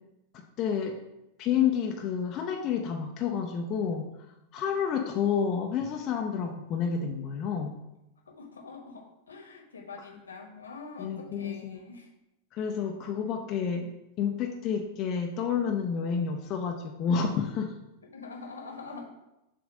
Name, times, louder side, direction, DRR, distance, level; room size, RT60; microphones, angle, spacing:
voice 1, 0.3-1.0 1.4-4.1 4.5-7.8 11.0-11.8 12.5-17.7, left 7 dB, 35° left, 2 dB, 0.5 m, -30 dB
voice 2, 8.3-12.1 18.1-19.1, left 4 dB, 75° left, 2 dB, 1.1 m, -44 dB
7.0 x 2.6 x 5.2 m, 0.92 s
figure-of-eight pair, 90°, 0 cm